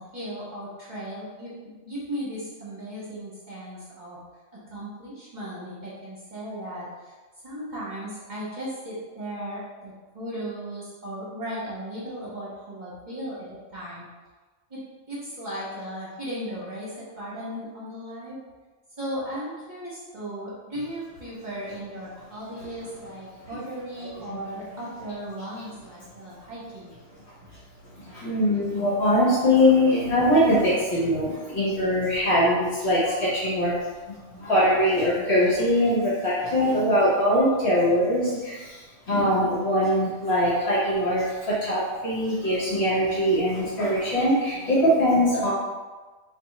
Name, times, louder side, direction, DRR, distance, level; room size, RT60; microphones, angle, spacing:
voice 1, 0.0-1.5 1.8-4.2 4.5-7.1 7.4-14.1 14.7-14.8 15.1-18.4 19.0-26.9 27.4-27.5, equal, 35° right, -8 dB, 1.1 m, -36 dB
voice 2, 28.0-33.7 34.1-45.5, equal, 55° left, -8 dB, 1.2 m, -22 dB
3.4 x 2.6 x 4.1 m, 1.3 s
omnidirectional pair, 1.4 m